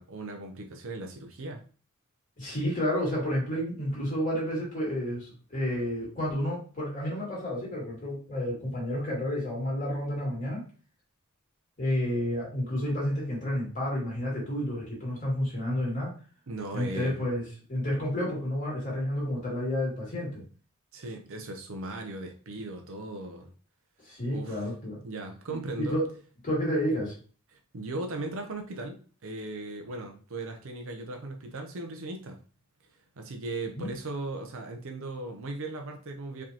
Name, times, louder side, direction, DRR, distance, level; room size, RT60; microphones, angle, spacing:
voice 1, 0.0-1.6 16.5-17.2 20.9-23.5 24.3-24.7 25.0-26.0 27.5-32.4 33.2-36.4, right 2 dB, 65° right, 4 dB, 0.7 m, -38 dB
voice 2, 2.4-10.6 11.8-16.1 16.7-20.4 24.0-25.0 25.5-26.1 26.4-27.2 33.7-33.9, equal, 35° left, -4 dB, 2.3 m, -30 dB
4.9 x 3.5 x 2.9 m, 0.39 s
head